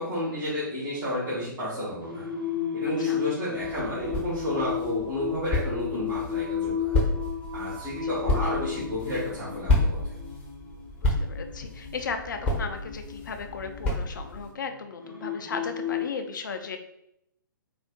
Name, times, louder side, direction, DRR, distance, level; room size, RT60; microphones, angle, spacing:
voice 1, 0.0-2.3 2.7-7.0 7.5-10.1, equal, 25° right, -9 dB, 1.2 m, -31 dB
Singing, 2.0-16.0, left 9 dB, 90° right, 0.9 m, -34 dB
sound 1, 3.6-14.5, left 1 dB, 10° left, 0.9 m, -31 dB
voice 2, 11.0-16.8, left 5 dB, 60° left, 6 dB, 0.5 m, -36 dB
4.4 x 2.4 x 2.3 m, 0.77 s
figure-of-eight pair, 120°, 11 cm